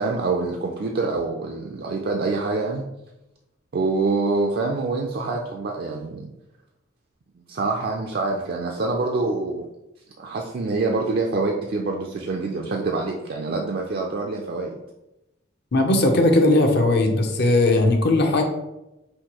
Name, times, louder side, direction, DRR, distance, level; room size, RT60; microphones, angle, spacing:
voice 1, 0.0-2.8 3.7-6.3 7.4-9.7 10.2-14.7, right 3 dB, 50° right, 1 dB, 0.4 m, -26 dB
voice 2, 15.7-18.4, left 2 dB, 55° left, 4 dB, 0.6 m, -18 dB
5.5 x 2.6 x 2.9 m, 0.93 s
head